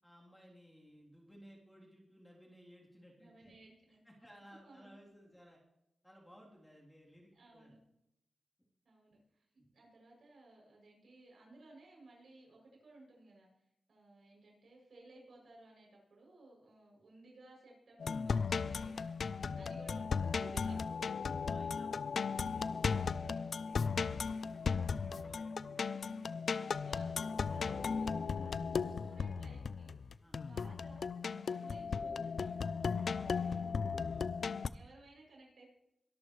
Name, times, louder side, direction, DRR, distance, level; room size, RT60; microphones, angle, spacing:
voice 1, 0.0-3.5 4.0-5.6 6.0-7.7 19.2-19.7 21.4-23.9 24.1-24.5 24.8-25.8 30.2-30.4 32.8-33.3 34.0-34.3, equal, 5° left, -3 dB, 3.3 m, -59 dB
voice 2, 3.2-4.0 4.6-5.0 7.3-7.8 8.8-13.5 13.9-19.2 19.6-20.8 23.2-23.4 23.6-24.5 25.8-33.6 33.9-34.3 34.7-35.7, right 2 dB, 65° right, -1 dB, 7.0 m, -59 dB
sound 1, 18.0-34.7, left 5 dB, 60° left, 0.5 m, -36 dB
22.5 x 12.5 x 3.2 m, 0.82 s
wide cardioid pair, 135°, 0 cm